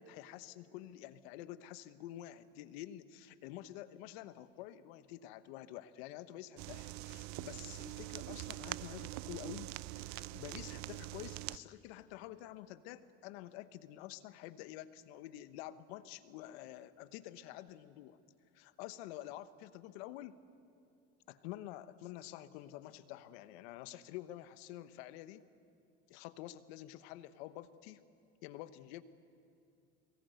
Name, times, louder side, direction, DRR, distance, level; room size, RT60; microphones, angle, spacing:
voice 1, 0.0-18.2 18.5-20.4 21.3-25.4 26.1-28.0 28.4-29.0, left 13 dB, 80° left, 14 dB, 1.1 m, -49 dB
sound 1, 6.6-11.6, right 18 dB, 65° right, 0.7 m, -44 dB
22.5 x 19.5 x 9.3 m, 2.5 s
hypercardioid pair, 75°, 31 cm